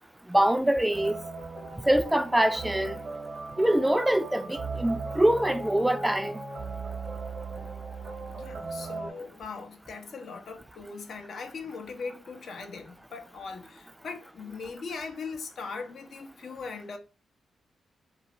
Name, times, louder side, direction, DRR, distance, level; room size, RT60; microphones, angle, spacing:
voice 1, 0.3-1.2 1.9-3.0 3.6-6.4, right 1 dB, 10° right, 0.4 m, -24 dB
sound 1, 0.9-9.1, right 3 dB, 60° right, 0.9 m, -38 dB
voice 2, 8.3-17.0, left 4 dB, 65° left, 0.6 m, -40 dB
2.4 x 2.4 x 2.9 m
hypercardioid pair, 40°, 0 cm